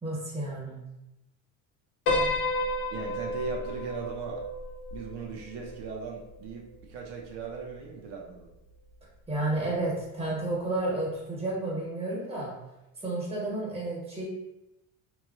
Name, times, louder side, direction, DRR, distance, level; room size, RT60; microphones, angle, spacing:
voice 1, 0.0-0.8 9.3-12.5 13.0-14.2, right 2 dB, 15° right, -5 dB, 1.2 m, -31 dB
Piano, 2.1-6.5, left 1 dB, 65° left, 1.0 m, -32 dB
voice 2, 2.9-4.4 4.9-8.5, right 4 dB, 70° right, -1 dB, 0.6 m, -38 dB
3.0 x 2.3 x 2.4 m, 0.93 s
cardioid pair, 115°, 41 cm